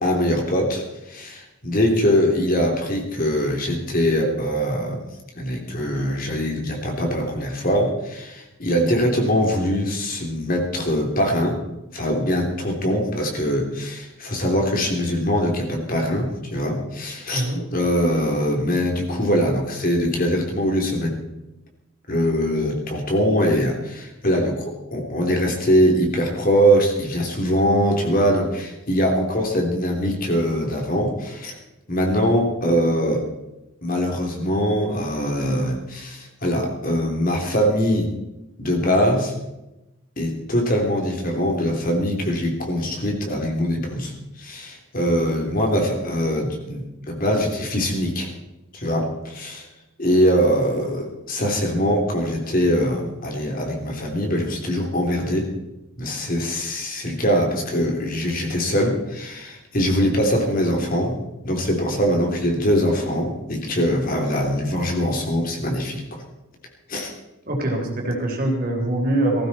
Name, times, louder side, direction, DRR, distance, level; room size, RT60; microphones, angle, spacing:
voice 1, 0.0-5.0 5.4-11.6 11.9-21.1 22.1-31.6 31.9-33.3 33.8-38.1 38.6-39.3 40.2-44.1 44.4-48.3 48.7-49.6 50.0-55.5 56.0-61.2 61.4-66.2 66.9-67.1, equal, 40° left, 2 dB, 3.0 m, -22 dB
voice 2, 17.3-17.6 67.5-69.5, right 1 dB, 45° right, 1 dB, 3.6 m, -23 dB
18.5 x 15.0 x 4.2 m, 0.95 s
head